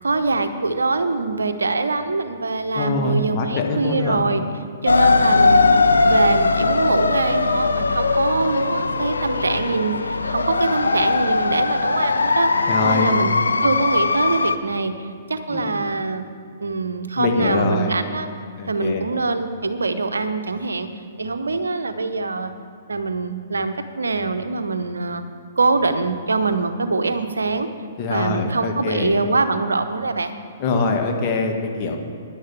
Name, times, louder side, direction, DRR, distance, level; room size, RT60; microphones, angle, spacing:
voice 1, 0.0-4.4 4.8-5.8 6.0-12.5 12.8-14.9 15.3-16.3 16.6-18.3 18.7-20.9 21.2-22.5 22.9-25.2 25.6-27.7 28.1-30.3, right 3 dB, 75° right, 9 dB, 0.8 m, -23 dB
voice 2, 2.7-4.2 12.7-13.2 15.5-15.8 17.2-18.0 18.6-19.1 28.0-29.1 30.6-32.0, left 3 dB, 35° left, 2 dB, 1.4 m, -23 dB
sound 1, 4.9-14.6, left 3 dB, 80° left, 0.5 m, -19 dB
10.5 x 6.5 x 8.1 m, 2.2 s
figure-of-eight pair, 120°, 0 cm